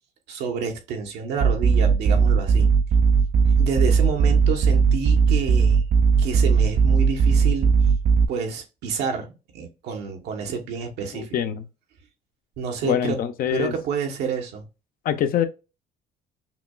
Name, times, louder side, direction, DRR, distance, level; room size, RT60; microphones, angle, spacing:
voice 1, 0.3-2.7 3.6-5.9 6.2-7.8 8.3-11.3 12.6-13.2 13.5-14.7, right 5 dB, 85° right, 1.3 m, -29 dB
sound 1, 1.4-8.3, right 5 dB, 45° right, 0.4 m, -18 dB
voice 2, 11.1-11.6 12.8-13.7 15.0-15.4, left 10 dB, 60° left, 0.7 m, -24 dB
5.8 x 2.3 x 2.3 m
cardioid pair, 110°, 17 cm